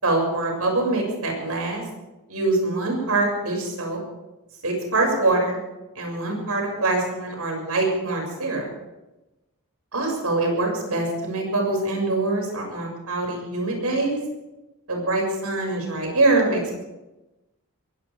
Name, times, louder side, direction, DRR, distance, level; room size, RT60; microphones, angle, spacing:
voice 1, 0.0-1.8 2.3-4.0 4.6-5.6 5.9-8.7 9.9-14.2 14.9-16.8, right 2 dB, 90° right, 1 dB, 6.5 m, -24 dB
22.0 x 17.0 x 3.6 m, 1.0 s
head